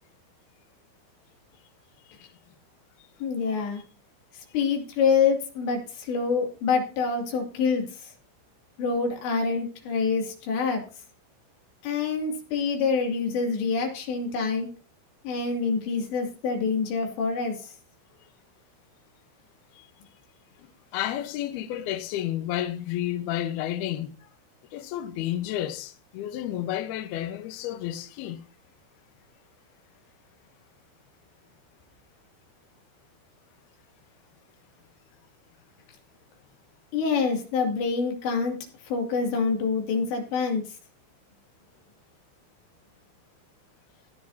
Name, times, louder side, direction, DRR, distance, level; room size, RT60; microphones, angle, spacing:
voice 1, 3.2-3.8 4.3-8.1 8.8-10.8 11.8-14.7 15.2-17.7 36.9-38.6 38.9-40.6, left 5 dB, 60° left, 4.5 m, -26 dB
voice 2, 20.6-24.3 24.7-28.4, left 12 dB, 80° left, 2.3 m, -31 dB
17.5 x 9.8 x 2.8 m
omnidirectional pair, 5.9 m